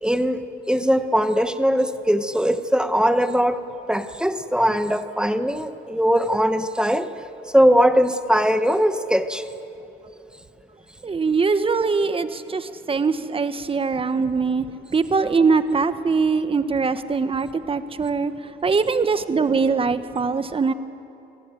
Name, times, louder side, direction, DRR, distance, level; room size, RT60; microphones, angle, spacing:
voice 1, 0.0-3.6 3.9-7.1 7.5-9.4, equal, 5° right, 9 dB, 1.2 m, -20 dB
voice 2, 11.0-14.7 14.9-20.7, right 4 dB, 30° right, 11 dB, 1.4 m, -22 dB
27.5 x 18.5 x 9.3 m, 2.9 s
supercardioid pair, 80°, 19 cm